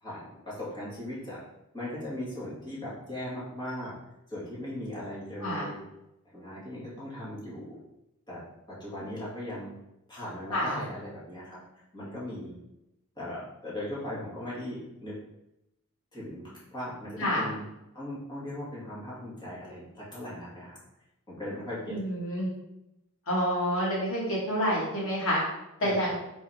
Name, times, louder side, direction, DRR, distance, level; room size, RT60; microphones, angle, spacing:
voice 1, 0.0-1.4 1.7-3.9 4.3-5.8 6.3-7.8 8.3-8.4 8.7-9.7 10.1-11.6 11.9-12.6 13.2-15.1 16.1-17.6 17.9-20.8 21.3-22.0 25.8-26.1, left 1 dB, 20° left, -8 dB, 2.2 m, -38 dB
voice 2, 21.9-22.5 23.3-25.4 25.8-26.2, equal, 75° left, -5 dB, 2.3 m, -28 dB
4.5 x 4.3 x 5.1 m, 0.88 s
head